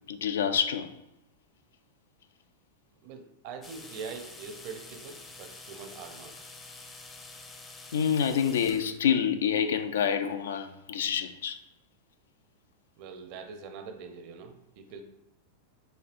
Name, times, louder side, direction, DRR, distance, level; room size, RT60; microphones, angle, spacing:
voice 1, 0.1-0.9 7.9-11.6, left 7 dB, 80° left, 0.3 m, -27 dB
voice 2, 3.0-6.4 13.0-15.0, right 5 dB, 55° right, 0.6 m, -43 dB
sound 1, 3.6-9.0, left 3 dB, 25° left, 0.5 m, -47 dB
4.3 x 2.8 x 2.5 m
hypercardioid pair, 105°, 0 cm